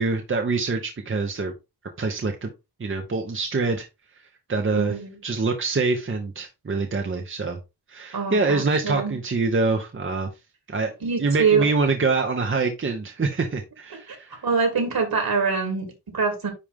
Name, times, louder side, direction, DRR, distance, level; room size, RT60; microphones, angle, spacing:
voice 1, 0.0-1.5 2.0-2.5 2.8-3.9 4.5-4.9 5.2-7.6 7.9-10.3 10.7-10.9 11.2-14.4, right 3 dB, 30° right, 4 dB, 0.9 m, -25 dB
voice 2, 4.7-5.2 8.1-9.1 11.0-11.6 14.1-14.2 14.4-16.5, right 5 dB, 60° right, 3 dB, 3.1 m, -24 dB
10.0 x 3.4 x 3.6 m, 0.25 s
wide cardioid pair, 125°, 41 cm